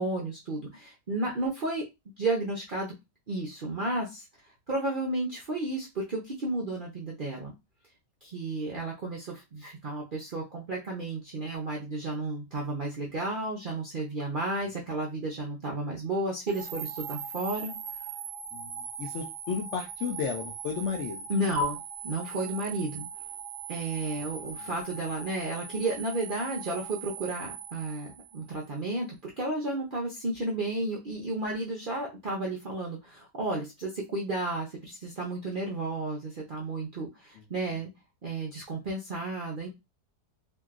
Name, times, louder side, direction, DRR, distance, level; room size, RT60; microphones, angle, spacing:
voice 1, 0.0-1.8 2.2-2.9 3.3-4.2 4.7-7.5 8.2-17.7 21.3-23.1 23.7-29.1 29.4-37.9 38.2-39.7, right 2 dB, 60° right, -2 dB, 0.5 m, -32 dB
sound 1, 16.5-28.7, right 7 dB, 90° right, 1.2 m, -41 dB
voice 2, 18.5-21.3 24.6-24.7 37.4-37.5, left 6 dB, 65° left, 2 dB, 0.7 m, -34 dB
2.8 x 2.6 x 2.4 m, 0.23 s
omnidirectional pair, 1.7 m